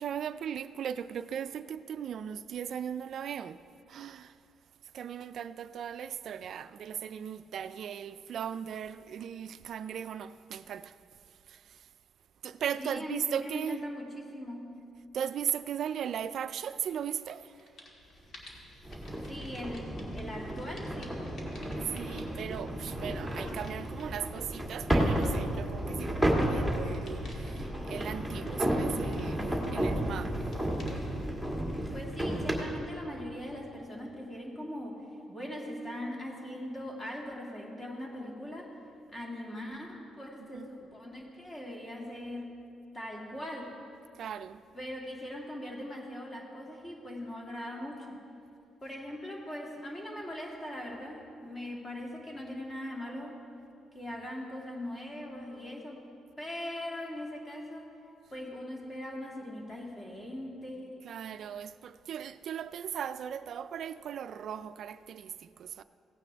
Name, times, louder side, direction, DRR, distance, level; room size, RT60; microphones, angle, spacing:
voice 1, 0.0-3.6 3.9-4.4 4.9-11.0 11.5-11.9 12.4-13.8 15.1-17.7 21.8-30.4 40.4-40.7 44.1-44.6 61.0-65.8, right 9 dB, 65° right, 0.3 m, -38 dB
voice 2, 12.8-14.7 19.3-21.2 31.9-38.8 39.1-42.5 42.9-43.7 44.7-48.2 48.8-53.4 53.9-56.1 56.4-57.9 58.3-61.0, left 1 dB, 25° left, 2.3 m, -40 dB
sound 1, 17.0-17.3 17.6-32.6, left 1 dB, 55° left, 2.1 m, -52 dB
sound 2, 18.8-32.6, right 1 dB, 10° left, 1.9 m, -32 dB
17.0 x 9.2 x 3.4 m
cardioid pair, 90°, 0 cm